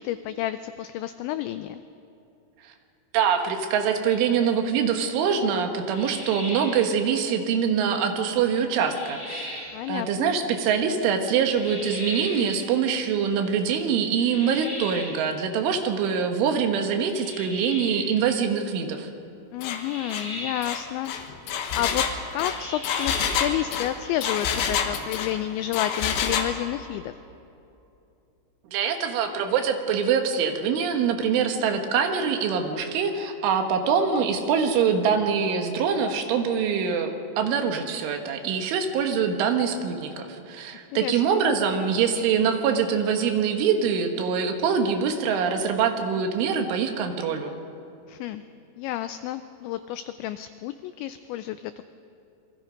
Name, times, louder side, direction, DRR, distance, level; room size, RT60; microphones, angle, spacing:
voice 1, 0.0-1.8 9.7-10.3 19.5-21.1 21.7-22.1 22.3-27.2 41.0-41.2 48.1-48.4 48.8-51.9, left 13 dB, 90° left, 11 dB, 2.6 m, -30 dB
voice 2, 3.1-19.1 28.7-47.6, right 6 dB, 75° right, 5 dB, 3.7 m, -24 dB
sound 1, 5.9-6.9 8.8-9.8 11.5-12.6 14.2-15.2 17.1-18.2 19.8-20.8 22.4-23.5, left 1 dB, 20° left, 6.9 m, -37 dB
Engine, 19.6-19.8 20.1-20.3 20.6-25.4 25.7-26.5, left 7 dB, 70° left, 3.3 m, -27 dB
27.5 x 22.5 x 5.2 m, 2.8 s
omnidirectional pair, 5.9 m